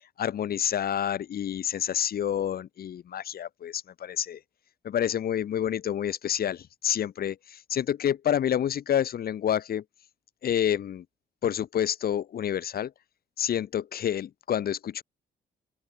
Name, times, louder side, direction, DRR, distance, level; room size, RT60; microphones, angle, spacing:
voice 1, 0.2-4.4 4.8-9.8 10.4-11.0 11.4-12.9 13.4-15.0, left 10 dB, 65° left, 2.6 m, -28 dB
open air
cardioid pair, 85°, 17 cm